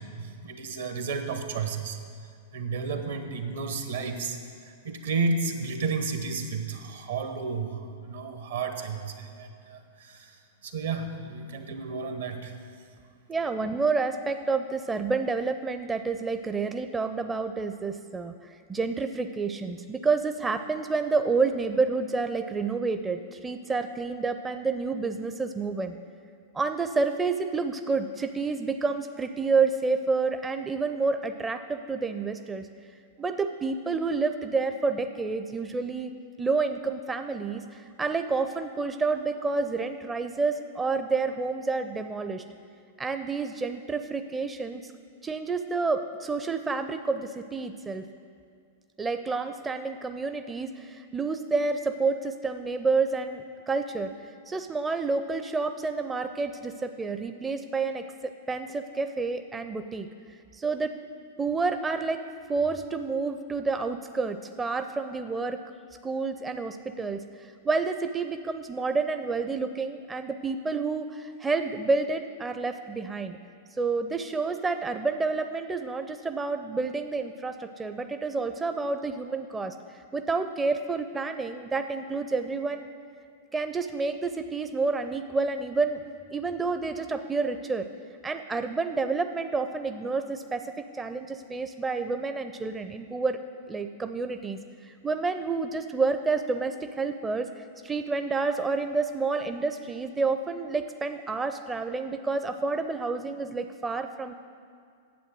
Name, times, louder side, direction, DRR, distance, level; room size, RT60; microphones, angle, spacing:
voice 1, 0.0-2.0 2.5-12.6, right 4 dB, 70° right, 7 dB, 1.1 m, -32 dB
voice 2, 13.3-26.0 26.5-32.7 33.2-36.1 36.4-42.4 43.0-44.9 45.2-48.1 49.0-60.1 60.5-60.9 61.4-62.2 62.5-65.6 66.0-73.4 73.8-82.9 83.5-86.0 86.3-87.9 88.2-93.4 93.7-104.3, right 4 dB, 15° right, 8 dB, 0.5 m, -29 dB
9.4 x 7.9 x 7.5 m, 2.2 s
figure-of-eight pair, 100°, 0 cm